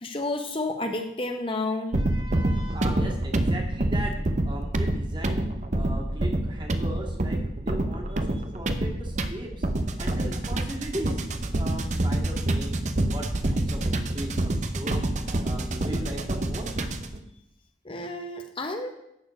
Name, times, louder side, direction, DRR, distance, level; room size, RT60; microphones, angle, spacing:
voice 1, 0.0-2.0 17.8-18.9, left 2 dB, 30° left, 5 dB, 0.8 m, -31 dB
voice 2, 1.9-4.1 4.4-5.5 5.7-9.7 10.0-11.2 11.5-12.7 13.0-15.1 15.4-16.9, right 1 dB, 25° right, -1 dB, 2.1 m, -38 dB
sound 1, 1.9-17.2, right 1 dB, 40° right, 0.8 m, -27 dB
12.0 x 4.4 x 8.3 m, 0.83 s
head